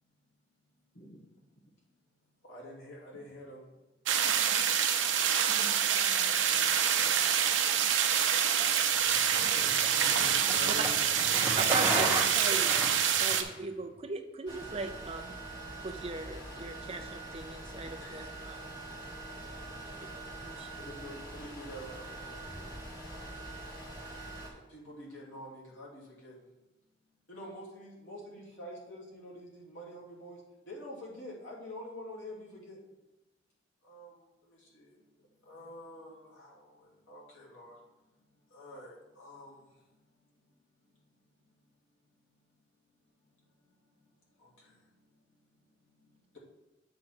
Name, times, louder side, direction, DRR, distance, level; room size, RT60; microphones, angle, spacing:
voice 1, 0.9-1.3 3.1-3.2 5.4-7.9, right 1 dB, 55° left, -2 dB, 1.1 m, -50 dB
voice 2, 2.4-3.7 9.3-11.1 12.6-12.8 13.2-13.5 17.9-18.1 19.9-20.3 20.7-22.7 23.1-23.3 24.7-26.4 27.3-30.4 30.7-32.8 33.8-34.2 34.5-34.9 35.4-37.8 38.5-39.7 44.4-44.7, left 1 dB, 85° left, -5 dB, 2.8 m, -47 dB
sound 1, 4.1-13.4, right 8 dB, 80° right, 0.7 m, -27 dB
sound 2, 9.1-13.5, right 2 dB, 10° right, 1.3 m, -33 dB
voice 3, 11.6-12.7 13.2-15.4 15.8-18.8 20.2-20.7, right 3 dB, 30° right, 5 dB, 0.6 m, -39 dB
sound 3, 14.5-24.5, right 2 dB, 20° left, 2.3 m, -44 dB
7.6 x 3.7 x 6.1 m, 1.1 s
head